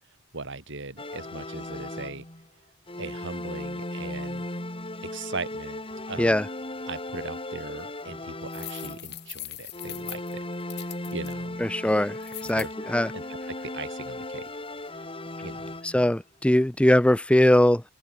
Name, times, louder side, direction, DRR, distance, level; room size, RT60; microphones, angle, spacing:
voice 1, 0.3-2.2 3.0-4.5 5.1-6.4 6.9-10.5 10.8-11.6 12.4-12.7 13.1-14.5 14.9-15.0 15.4-15.7, right 3 dB, 55° right, 5.9 m, -39 dB
sound 1, 1.0-2.5 2.9-9.3 9.7-16.2, left 1 dB, 25° left, 4.9 m, -37 dB
sound 2, 8.5-11.3 12.2-12.7, left 16 dB, 50° left, 2.9 m, -40 dB
voice 2, 11.6-12.2 12.5-13.1 15.8-17.8, left 1 dB, 5° left, 0.5 m, -21 dB
open air
head